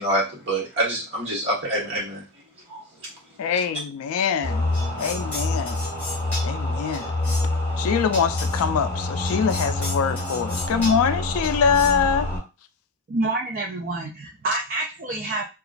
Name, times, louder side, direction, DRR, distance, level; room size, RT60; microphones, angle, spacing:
voice 1, 0.0-2.2 2.7-2.8 3.5-3.6, right 1 dB, 55° right, 1.4 m, -26 dB
voice 2, 3.4-4.7 5.0-5.8 6.4-7.1 7.8-12.3, left 6 dB, 80° left, 0.3 m, -23 dB
sound 1, 4.4-12.4, left 2 dB, 10° left, 1.2 m, -26 dB
voice 3, 13.1-15.4, right 2 dB, 40° right, 0.4 m, -27 dB
2.9 x 2.3 x 2.4 m
head